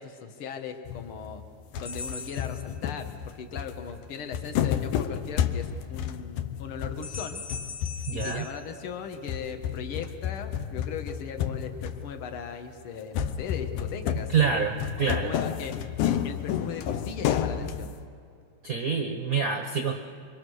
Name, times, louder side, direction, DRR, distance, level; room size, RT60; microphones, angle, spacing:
voice 1, 0.0-1.4 1.7-7.4 8.1-14.4 15.0-15.8 16.0-17.9, left 6 dB, 50° left, 6 dB, 2.0 m, -38 dB
sound 1, 0.9-1.5 1.7-8.7 9.1-12.4 13.1-18.1, left 9 dB, 80° left, 2.4 m, -31 dB
sound 2, 1.8-3.4 7.0-9.5, left 4 dB, 25° left, 1.0 m, -41 dB
voice 2, 8.1-8.4 14.3-14.7 15.0-15.3 18.6-19.9, right 6 dB, 60° right, 3 dB, 0.9 m, -26 dB
27.5 x 24.0 x 6.5 m, 2.4 s
omnidirectional pair, 3.6 m